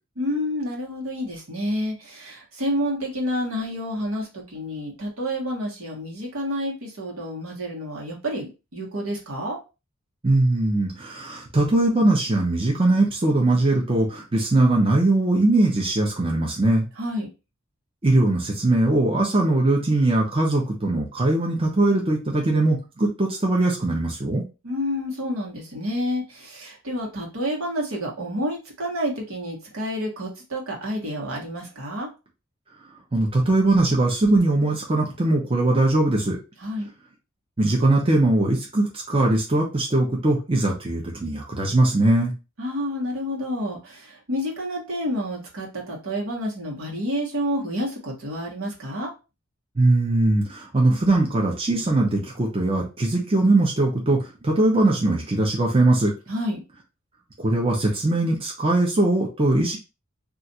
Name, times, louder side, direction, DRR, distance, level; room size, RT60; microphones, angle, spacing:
voice 1, 0.2-9.6 17.0-17.3 24.6-32.1 36.6-36.9 42.6-49.1 56.3-56.6, equal, 70° right, -2 dB, 1.2 m, -29 dB
voice 2, 10.2-16.9 18.0-24.4 33.1-36.4 37.6-42.3 49.8-56.1 57.4-59.8, right 2 dB, 25° right, -1 dB, 0.6 m, -21 dB
2.4 x 2.4 x 4.0 m, 0.29 s
head